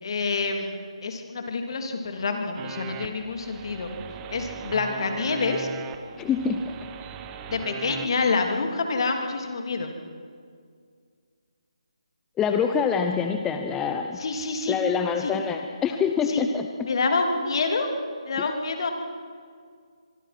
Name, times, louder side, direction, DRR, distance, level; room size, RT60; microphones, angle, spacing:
voice 1, 0.0-3.9 4.3-5.7 7.5-9.9 14.2-14.8 15.2-15.3 16.3-16.4 16.8-17.9 18.3-18.9, left 4 dB, 50° left, 4 dB, 3.2 m, -27 dB
sound 1, 2.6-8.1, right 7 dB, 15° right, 1.0 m, -39 dB
voice 2, 6.2-6.7 12.4-14.2 14.7-16.7, left 6 dB, 10° left, 5 dB, 0.8 m, -25 dB
25.0 x 23.5 x 6.1 m, 2.1 s
figure-of-eight pair, 160°, 3 cm